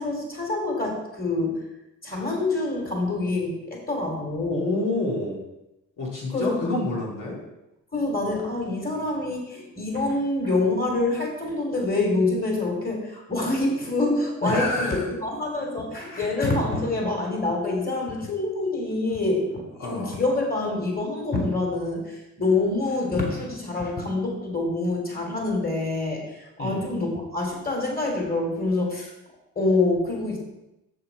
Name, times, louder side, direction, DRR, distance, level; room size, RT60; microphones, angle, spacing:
voice 1, 0.0-1.6 2.0-4.6 6.3-6.6 7.9-19.6 19.9-26.2 26.6-29.1 29.5-30.4, left 2 dB, 25° left, 0 dB, 3.0 m, -26 dB
voice 2, 4.5-5.4 6.0-7.4 14.4-15.1 19.8-20.1 26.6-26.8, left 2 dB, 70° left, -4 dB, 2.2 m, -28 dB
6.9 x 6.7 x 4.7 m, 0.91 s
cardioid pair, 70°, 33 cm